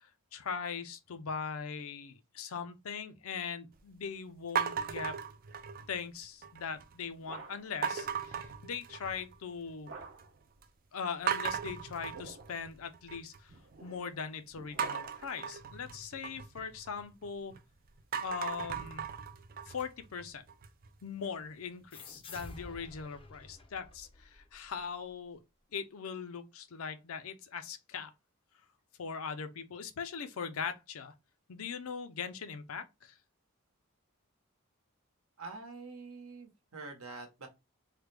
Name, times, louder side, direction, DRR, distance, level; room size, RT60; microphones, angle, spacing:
voice 1, 0.0-5.2 5.9-9.9 10.9-13.5 13.8-17.6 18.2-19.1 19.7-20.4 21.0-25.4 25.7-28.1 29.0-31.1 31.5-33.2, left 6 dB, 75° left, 0.5 m, -40 dB
sound 1, 4.6-6.0 6.4-6.9 7.8-9.4 9.7-10.2 10.6-10.7 11.3-13.4 14.8-17.6 18.0-20.9, right 7 dB, 40° right, 0.3 m, -37 dB
sound 2, 6.7-7.9 9.9-10.5 11.8-12.7 13.5-15.4, right 4 dB, 55° right, 0.7 m, -51 dB
sound 3, 21.9-25.1, left 3 dB, 25° left, 0.4 m, -51 dB
voice 2, 35.4-37.5, right 3 dB, 75° right, 1.0 m, -46 dB
3.3 x 2.2 x 3.2 m
head